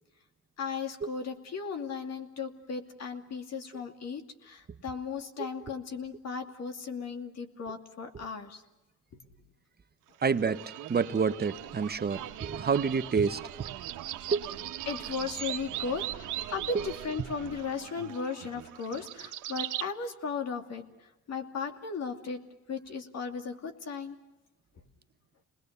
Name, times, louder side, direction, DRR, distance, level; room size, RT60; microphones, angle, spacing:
voice 1, 0.6-8.6 14.9-20.9 21.3-22.4 22.7-24.2, left 5 dB, 60° left, 6 dB, 2.5 m, -36 dB
voice 2, 10.2-10.6 10.9-13.7 14.3-14.4 16.7-16.8, right 5 dB, 30° right, 11 dB, 0.9 m, -28 dB
sound 1, 10.2-19.9, right 13 dB, 85° right, 1.2 m, -40 dB
29.0 x 20.5 x 6.8 m, 1.0 s
cardioid pair, 90°, 30 cm